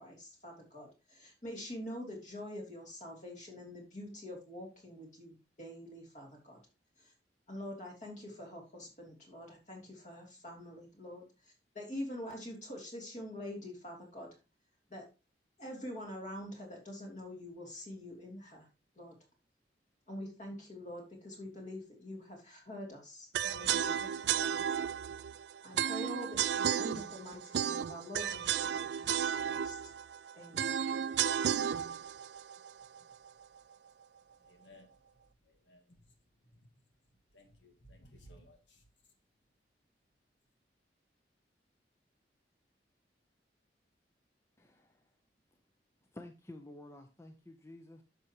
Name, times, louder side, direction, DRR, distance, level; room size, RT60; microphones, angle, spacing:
voice 1, 0.0-6.6 7.0-7.1 7.5-14.3 14.9-15.0 15.6-18.7 18.9-19.2 20.1-24.9 25.6-29.8 30.3-30.7, left 1 dB, 45° left, 2.9 m, -45 dB
sound 1, 23.3-33.4, right 9 dB, 65° right, 0.3 m, -33 dB
voice 2, 32.8-33.2 34.4-35.0 35.4-36.1 36.4-36.7 37.3-38.8, equal, 90° left, 1.8 m, -60 dB
voice 3, 44.6-45.1 46.1-48.0, left 1 dB, 15° left, 0.6 m, -51 dB
10.5 x 6.5 x 2.9 m
head